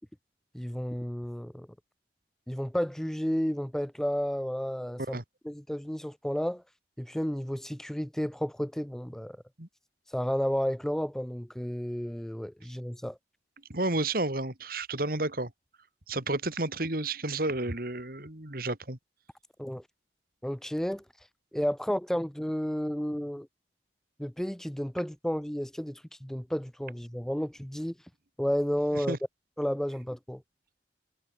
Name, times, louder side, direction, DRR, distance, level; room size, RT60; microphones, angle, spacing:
voice 1, 0.5-1.7 2.5-5.2 5.4-6.6 7.0-9.4 10.1-13.2 19.6-19.8 20.4-21.0 21.5-23.5 24.2-27.9 28.4-29.2 29.6-30.4, equal, 5° left, 0.4 m, -32 dB
voice 2, 13.7-15.5 16.1-19.0 28.9-29.2, right 2 dB, 55° right, 2.8 m, -31 dB
head